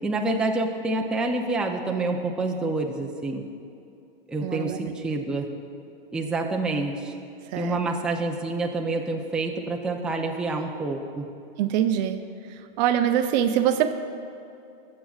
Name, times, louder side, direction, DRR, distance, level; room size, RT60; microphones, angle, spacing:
voice 1, 0.0-3.5 4.3-5.5 6.1-7.2 7.5-11.3, right 2 dB, 5° right, 0 dB, 0.5 m, -27 dB
voice 2, 4.4-4.9 7.4-7.8 11.6-12.2 12.5-13.9, right 10 dB, 50° right, 9 dB, 0.6 m, -24 dB
19.0 x 7.5 x 2.4 m, 2.6 s
hypercardioid pair, 130°, 29 cm